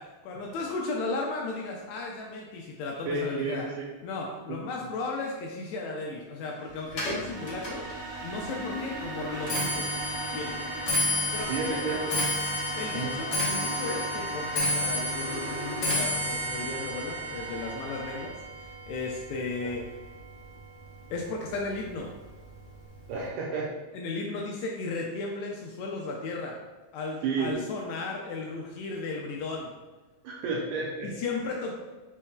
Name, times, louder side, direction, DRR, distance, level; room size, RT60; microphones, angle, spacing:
voice 1, 0.0-3.7 4.0-9.9 10.3-10.6 11.3-11.9 12.8-19.8 21.1-22.1 23.9-26.6 26.9-29.7 31.0-31.7, left 3 dB, 80° left, -1 dB, 1.7 m, -35 dB
voice 2, 3.1-3.9 4.5-4.6 11.5-12.3 12.9-13.1 19.6-19.7 23.1-23.7 27.2-27.6 30.2-31.1, right 4 dB, 85° right, -4 dB, 2.1 m, -31 dB
sound 1, 6.4-18.3, right 2 dB, 55° right, 2.0 m, -39 dB
Clock, 6.9-20.2 20.6-21.0 21.8-21.9 22.2-22.6 22.9-23.0, left 1 dB, 65° left, 1.0 m, -32 dB
4.6 x 4.2 x 2.2 m, 1.2 s
omnidirectional pair, 3.6 m